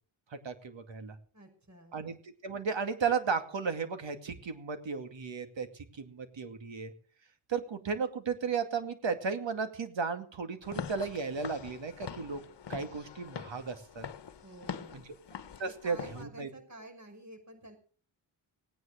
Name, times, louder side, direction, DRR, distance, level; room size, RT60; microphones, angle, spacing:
voice 1, 0.3-1.2 1.9-2.2 2.4-5.7 5.9-6.9 7.5-12.4 12.7-14.0 14.9-15.0 15.6-16.5, right 5 dB, 65° right, 8 dB, 2.4 m, -34 dB
voice 2, 1.3-2.0 14.4-15.1 15.6-17.8, right 1 dB, 35° right, 5 dB, 5.8 m, -50 dB
Walk footsteps / Siren, 10.6-16.2, left 7 dB, 55° left, 1.3 m, -43 dB
18.0 x 9.6 x 6.5 m, 0.43 s
cardioid pair, 70°, 49 cm